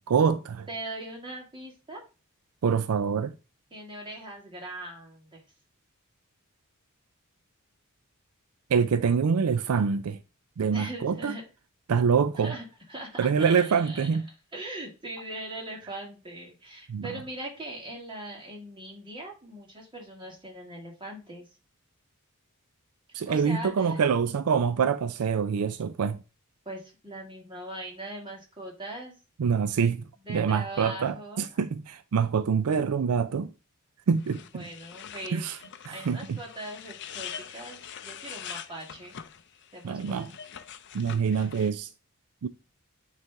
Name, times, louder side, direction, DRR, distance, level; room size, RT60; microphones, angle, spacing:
voice 1, 0.1-0.7 2.6-3.3 8.7-10.2 10.6-11.3 11.9-12.5 13.2-14.3 16.9-17.1 23.1-26.2 29.4-33.5 34.1-34.7 35.3-35.6 35.9-36.4 39.8-40.3 40.9-41.9 42.4-42.5, right 6 dB, 80° right, 0.4 m, -25 dB
voice 2, 0.7-2.0 3.7-5.4 10.7-11.4 12.4-14.2 14.5-21.5 23.3-24.1 26.7-29.2 30.2-31.5 34.4-35.4 35.9-39.2 39.7-40.2, right 1 dB, 20° right, 2.1 m, -40 dB
sound 1, 34.2-41.7, left 8 dB, 55° left, 0.5 m, -44 dB
9.1 x 3.3 x 3.5 m
head